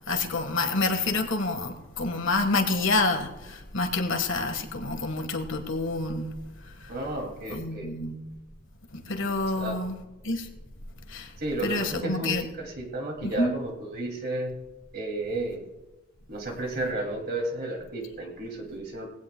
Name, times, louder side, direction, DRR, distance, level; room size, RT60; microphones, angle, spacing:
voice 1, 0.1-6.3 7.5-8.2 9.1-10.0 10.2-10.4 11.1-11.3 11.6-12.4 13.2-13.5, left 3 dB, 65° left, 1.5 m, -28 dB
voice 2, 6.9-7.9 9.6-9.8 11.4-14.6 14.9-15.7 16.3-19.1, right 2 dB, 50° right, 2.5 m, -32 dB
19.5 x 16.0 x 2.2 m
head